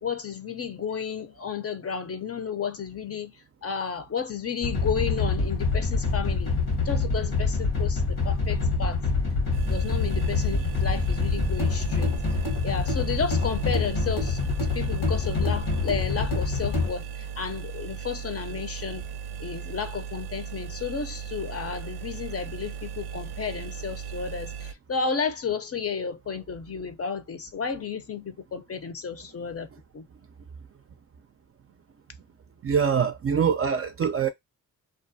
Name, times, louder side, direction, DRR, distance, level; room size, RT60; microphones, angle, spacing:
voice 1, 0.0-3.4 3.6-9.0 9.7-12.1 12.6-19.0 19.4-29.7 29.9-30.0, left 6 dB, 40° left, 0.6 m, -32 dB
sound 1, 4.6-16.9, left 4 dB, 85° left, 1.1 m, -26 dB
sound 2, 9.5-24.7, right 8 dB, 85° right, 0.5 m, -37 dB
voice 2, 32.6-34.3, right 7 dB, 40° right, 0.4 m, -24 dB
2.4 x 2.2 x 2.6 m
supercardioid pair, 50°, 38 cm